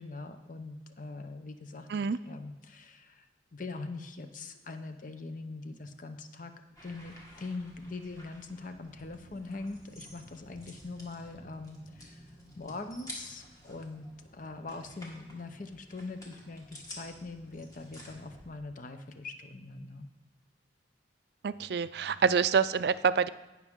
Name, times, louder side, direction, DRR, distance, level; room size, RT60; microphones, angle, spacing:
voice 1, 0.0-1.9 2.2-3.3 3.5-6.5 6.8-12.3 12.6-20.1, left 3 dB, 50° left, 7 dB, 0.8 m, -42 dB
sound 1, 6.8-18.4, equal, 20° left, 2.0 m, -51 dB
voice 2, 21.4-23.3, right 6 dB, 60° right, 15 dB, 0.4 m, -26 dB
17.5 x 6.1 x 3.7 m, 1.1 s
head